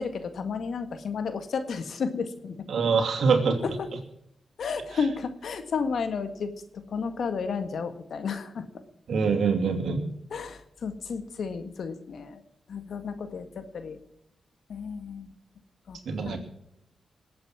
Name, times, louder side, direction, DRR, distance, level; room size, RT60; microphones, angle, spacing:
voice 1, 0.0-2.7 3.6-3.9 4.6-8.7 10.3-12.4 12.7-14.0 14.7-15.3 15.9-16.0 16.2-16.4, left 5 dB, 75° left, 10 dB, 1.7 m, -32 dB
voice 2, 2.7-3.6 9.1-10.0 16.1-16.4, right 5 dB, 75° right, 5 dB, 2.8 m, -24 dB
20.5 x 8.6 x 6.0 m, 0.78 s
supercardioid pair, 45°, 0 cm